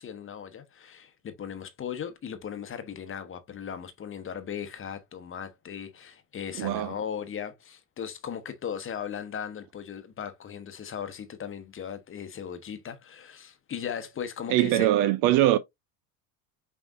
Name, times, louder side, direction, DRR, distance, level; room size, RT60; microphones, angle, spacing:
voice 1, 0.0-14.9, left 8 dB, 25° left, 1.0 m, -37 dB
voice 2, 6.6-6.9 14.5-15.6, right 14 dB, 50° right, 0.5 m, -22 dB
6.0 x 3.4 x 2.5 m
hypercardioid pair, 85°, 45 cm